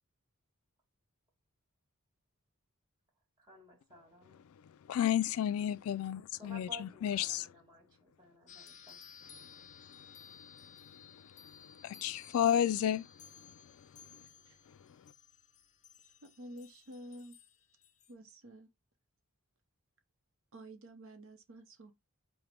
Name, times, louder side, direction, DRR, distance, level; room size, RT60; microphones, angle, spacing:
voice 1, 3.4-4.4 6.3-9.0, equal, 20° right, 1.8 m, -54 dB
voice 2, 4.6-7.5 9.4-10.0 10.3-13.1 13.4-13.5 14.1-14.2, left 10 dB, 70° left, 0.3 m, -33 dB
sound 1, 8.5-18.1, left 7 dB, 35° left, 0.6 m, -57 dB
voice 3, 16.2-17.4 18.1-18.7 20.5-21.9, right 1 dB, 60° right, 0.7 m, -50 dB
5.0 x 2.1 x 4.3 m
head